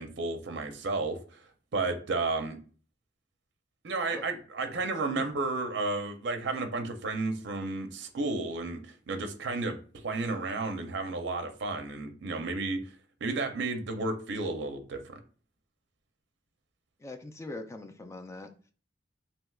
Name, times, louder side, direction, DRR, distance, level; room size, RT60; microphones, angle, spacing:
voice 1, 0.0-1.4 1.7-2.6 3.8-9.8 10.0-12.8 13.2-15.2, right 3 dB, 65° right, 6 dB, 0.5 m, -32 dB
voice 2, 17.0-18.5, left 2 dB, 15° left, 6 dB, 0.3 m, -42 dB
3.3 x 2.8 x 2.3 m, 0.40 s
head